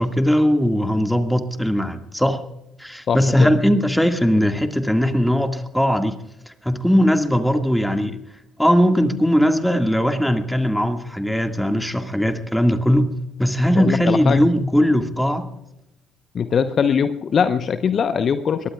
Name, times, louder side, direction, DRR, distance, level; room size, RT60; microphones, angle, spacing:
voice 1, 0.0-2.4 2.8-6.2 6.5-8.2 8.6-13.1 13.4-15.5, equal, ahead, 7 dB, 1.9 m, -19 dB
voice 2, 3.1-3.5 13.8-14.4 16.3-18.7, left 7 dB, 45° left, 11 dB, 0.9 m, -21 dB
23.5 x 21.5 x 2.4 m, 0.88 s
figure-of-eight pair, 50°, 0 cm